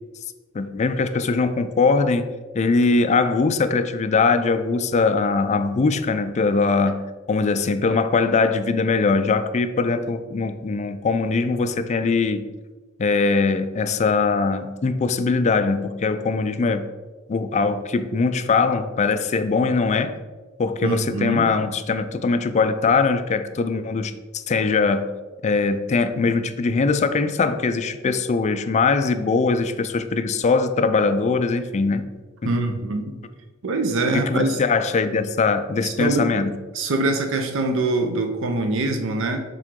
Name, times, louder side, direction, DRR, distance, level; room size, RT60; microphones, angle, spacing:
voice 1, 0.5-2.3 2.5-12.5 13.0-16.9 17.3-20.2 20.6-25.1 25.4-32.0 32.4-32.5 34.1-36.5, left 4 dB, 35° left, 10 dB, 0.4 m, -21 dB
voice 2, 20.8-21.5 32.4-33.2 33.6-34.6 35.8-36.3 36.7-39.4, right 2 dB, 65° right, 5 dB, 0.6 m, -23 dB
7.5 x 3.7 x 3.7 m, 1.3 s
head